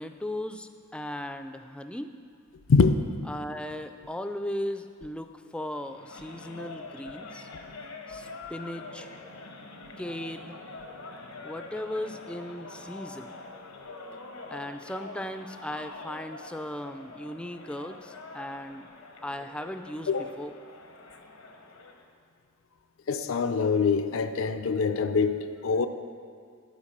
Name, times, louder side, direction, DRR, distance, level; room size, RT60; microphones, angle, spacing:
voice 1, 0.0-2.1 3.3-7.5 8.1-9.1 10.0-10.6 11.4-13.4 14.5-18.9 19.2-20.5, left 1 dB, 5° left, 0.3 m, -37 dB
sound 1, 5.8-22.0, left 3 dB, 85° left, 0.9 m, -45 dB
voice 2, 23.1-25.9, left 5 dB, 70° left, 0.4 m, -24 dB
11.5 x 4.5 x 6.6 m
head